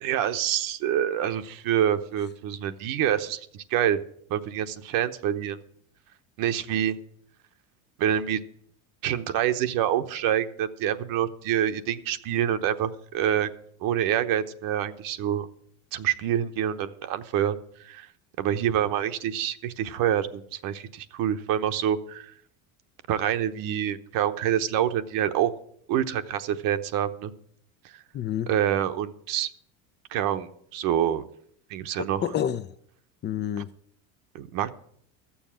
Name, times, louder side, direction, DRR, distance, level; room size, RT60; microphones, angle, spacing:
voice 1, 0.0-4.0 4.3-5.6 6.4-7.0 8.0-8.4 9.0-13.5 13.8-15.5 15.9-17.6 17.8-18.1 18.4-22.3 23.1-25.5 25.9-27.3 28.5-29.5 30.1-31.3 31.7-32.2 34.3-34.7, right 10 dB, 60° right, 10 dB, 1.0 m, -26 dB
voice 2, 28.1-28.5 32.0-32.7 33.2-33.7, left 10 dB, 30° left, 12 dB, 0.4 m, -28 dB
13.5 x 7.2 x 7.3 m, 0.66 s
supercardioid pair, 115°, 38 cm